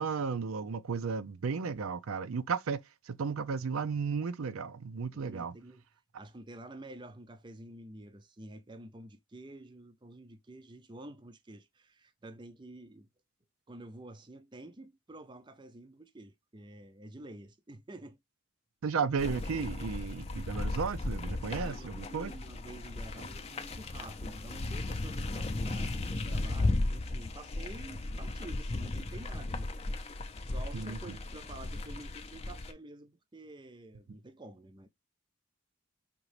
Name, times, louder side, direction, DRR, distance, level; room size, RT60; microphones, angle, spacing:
voice 1, 0.0-5.5 18.8-22.3 30.7-31.2, right 5 dB, 85° right, 0.5 m, -34 dB
voice 2, 5.1-5.8 6.1-13.1 13.7-18.2 21.5-29.8 30.4-34.9, right 1 dB, 20° right, 0.5 m, -49 dB
sound 1, 19.2-32.7, left 2 dB, 30° left, 0.5 m, -36 dB
5.2 x 2.9 x 3.2 m
head